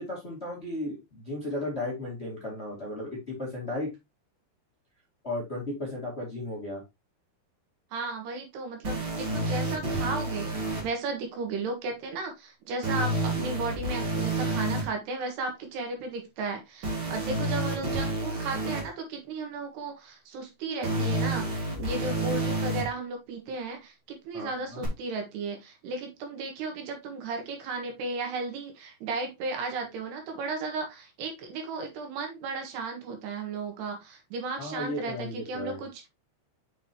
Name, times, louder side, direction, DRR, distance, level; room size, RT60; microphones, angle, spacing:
voice 1, 0.0-3.9 5.2-6.8 24.3-24.8 34.6-35.8, left 1 dB, 20° left, 1.8 m, -35 dB
voice 2, 7.9-36.1, right 3 dB, 70° right, 3.3 m, -35 dB
sound 1, 8.8-10.8 12.8-14.8 16.8-18.8 20.8-22.8 24.8-24.9, right 1 dB, 35° right, 2.2 m, -29 dB
7.2 x 6.0 x 2.9 m
omnidirectional pair, 5.2 m